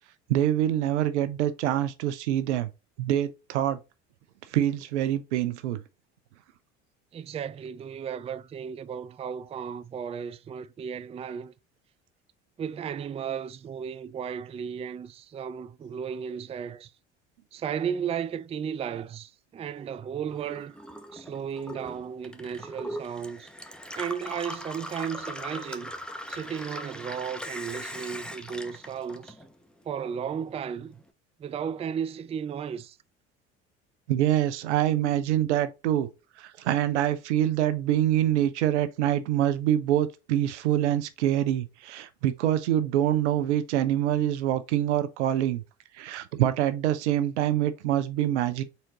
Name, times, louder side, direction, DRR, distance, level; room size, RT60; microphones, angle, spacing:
voice 1, 0.3-2.7 3.0-3.8 4.5-5.8 34.1-36.1 36.4-45.6 46.0-48.6, right 12 dB, 80° right, 0.7 m, -25 dB
voice 2, 7.1-11.5 12.6-16.9 17.5-20.8 21.1-23.5 23.9-25.9 26.3-29.4 29.9-31.0 31.4-33.0, right 7 dB, 20° right, 0.4 m, -34 dB
Gurgling / Water tap faucet / Sink (filling or washing), 20.3-29.8 30.1-31.0, equal, 5° left, 0.8 m, -40 dB
4.3 x 3.9 x 2.9 m
hypercardioid pair, 65°, 34 cm